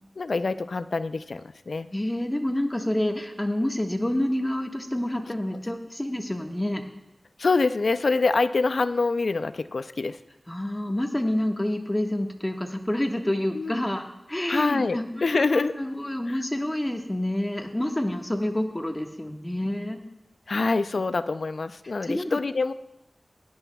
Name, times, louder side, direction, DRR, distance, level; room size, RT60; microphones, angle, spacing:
voice 1, 0.2-1.9 7.4-10.2 13.5-13.9 14.5-15.7 16.3-16.4 20.5-22.7, left 3 dB, 75° left, 13 dB, 0.4 m, -25 dB
voice 2, 1.9-6.8 10.5-20.1 22.0-22.4, left 1 dB, 20° left, 3 dB, 1.4 m, -28 dB
17.0 x 10.5 x 2.3 m, 0.91 s
cardioid pair, 45°, 0 cm